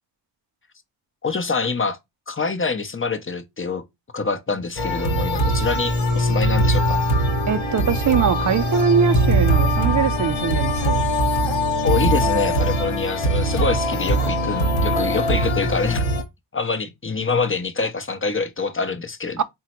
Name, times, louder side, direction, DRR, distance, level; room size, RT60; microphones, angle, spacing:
voice 1, 1.2-2.0 2.3-3.8 4.1-7.0 11.8-16.0 16.5-19.4, left 4 dB, 25° left, 0.8 m, -25 dB
sound 1, 4.8-16.2, equal, 75° left, 1.1 m, -21 dB
voice 2, 7.5-11.1 19.4-19.5, right 7 dB, 40° right, 0.5 m, -22 dB
3.7 x 2.2 x 4.3 m
cardioid pair, 40°, 47 cm